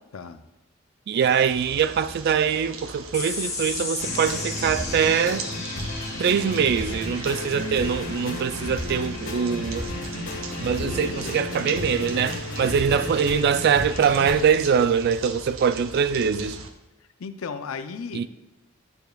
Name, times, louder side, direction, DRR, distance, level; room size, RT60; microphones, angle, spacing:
voice 1, 1.1-5.5 6.2-9.9 10.6-16.6 18.1-18.3, right 7 dB, 50° right, 0.3 m, -23 dB
sound 1, 1.2-16.7, right 4 dB, 75° right, 0.8 m, -40 dB
sound 2, 3.1-9.9, left 3 dB, 15° left, 1.0 m, -36 dB
sound 3, 4.0-14.5, left 1 dB, 65° left, 1.5 m, -33 dB
voice 2, 8.6-9.2 10.8-11.3 16.1-16.6 17.2-18.3, left 5 dB, 80° left, 0.5 m, -37 dB
11.5 x 6.9 x 2.3 m
head